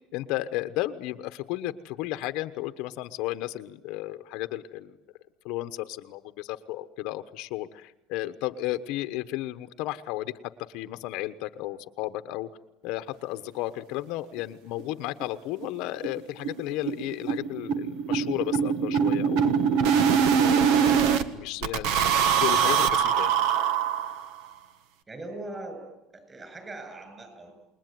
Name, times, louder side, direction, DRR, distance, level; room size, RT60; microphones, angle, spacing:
voice 1, 0.1-4.9 5.4-10.3 10.6-12.5 12.8-19.8 20.4-23.3, left 16 dB, 60° left, 10 dB, 1.1 m, -33 dB
sound 1, 14.4-14.5 14.8-14.9 15.2-15.3 15.6-15.8 16.0-21.2 21.6-24.4, right 7 dB, 65° right, 1.7 m, -23 dB
voice 2, 25.1-25.9 26.1-27.5, right 2 dB, 20° right, 7 dB, 7.9 m, -40 dB
28.5 x 21.0 x 9.3 m, 0.89 s
cardioid pair, 150°, 0 cm